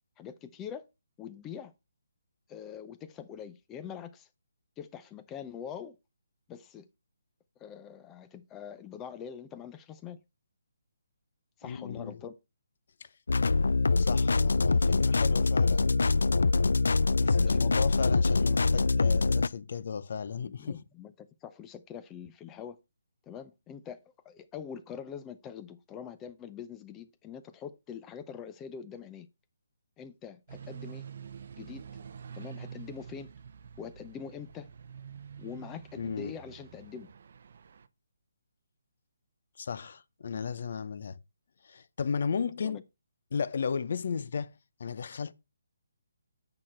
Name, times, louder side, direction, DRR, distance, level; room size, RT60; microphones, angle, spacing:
voice 1, 0.2-0.9 1.2-1.7 2.5-4.3 4.8-6.0 6.5-6.9 7.6-10.2 11.6-12.4 17.4-17.7 20.4-22.8 23.3-24.0 24.2-29.3 30.0-31.0 31.6-31.9 32.3-33.3 33.8-34.7 35.4-37.1 42.6-42.8, left 8 dB, 10° left, 0.5 m, -44 dB
voice 2, 11.6-12.2 13.0-13.1 14.0-15.9 17.2-20.8 36.0-36.3 39.6-41.2 41.6-42.8 43.3-45.3, left 6 dB, 50° left, 0.7 m, -35 dB
sound 1, 13.3-19.5, left 3 dB, 85° left, 0.4 m, -24 dB
sound 2, 30.5-37.9, right 7 dB, 50° right, 0.7 m, -47 dB
8.8 x 6.0 x 4.4 m
hypercardioid pair, 170°, 0 cm